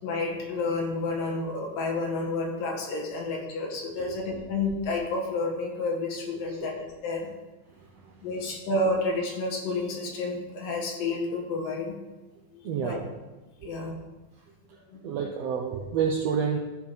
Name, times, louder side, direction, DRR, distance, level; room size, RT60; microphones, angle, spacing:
voice 1, 0.0-7.3 8.2-11.9 12.5-13.0 13.6-14.0 14.9-15.0, left 2 dB, 75° left, -1 dB, 3.4 m, -30 dB
voice 2, 12.6-13.0 15.0-16.6, right 7 dB, 80° right, -1 dB, 1.5 m, -28 dB
14.0 x 4.8 x 5.3 m, 1.1 s
omnidirectional pair, 4.0 m